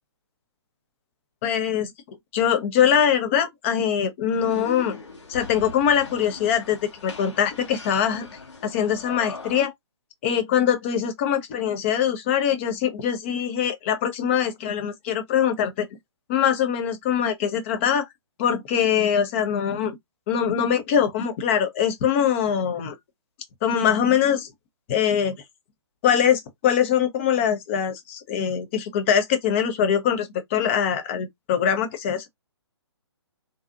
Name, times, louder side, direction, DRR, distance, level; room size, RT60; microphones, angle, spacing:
voice 1, 1.4-1.9 2.3-5.0 5.3-8.3 8.6-9.7 10.2-15.9 16.3-18.1 18.4-19.9 20.3-22.9 23.6-24.5 24.9-25.4 26.0-32.3, left 8 dB, 25° left, 0.6 m, -23 dB
sound 1, 4.3-9.6, left 4 dB, 75° left, 1.1 m, -40 dB
2.6 x 2.4 x 2.4 m
figure-of-eight pair, 130°, 15 cm